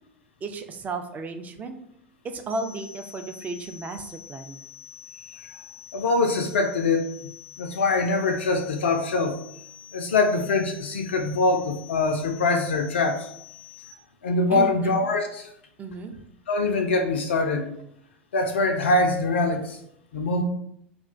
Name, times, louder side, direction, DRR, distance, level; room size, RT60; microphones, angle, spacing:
voice 1, 0.4-1.8 2.2-4.6 14.5-14.9 15.8-16.2, right 3 dB, 25° right, 7 dB, 0.4 m, -34 dB
sound 1, 2.5-13.9, left 10 dB, 75° right, 0.6 m, -46 dB
voice 2, 5.9-7.3 7.6-9.4 9.9-13.3 14.2-15.5 16.5-17.8 18.3-19.8 20.1-20.4, left 3 dB, 75° left, 5 dB, 0.3 m, -23 dB
2.4 x 2.2 x 3.7 m, 0.73 s
figure-of-eight pair, 80°, 6 cm